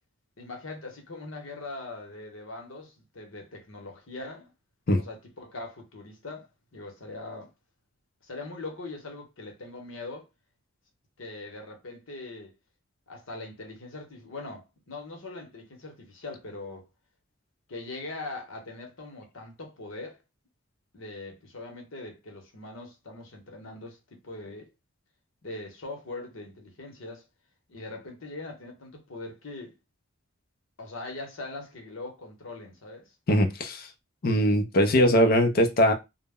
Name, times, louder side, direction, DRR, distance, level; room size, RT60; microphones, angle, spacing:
voice 1, 0.4-4.5 5.0-7.5 8.3-10.3 11.2-12.5 13.1-16.9 17.7-20.2 20.9-24.7 25.4-27.2 27.7-29.7 30.8-33.1, left 2 dB, 70° left, 0.8 m, -41 dB
voice 2, 33.3-33.9 34.2-35.9, equal, 45° left, 0.4 m, -21 dB
2.0 x 2.0 x 3.4 m
head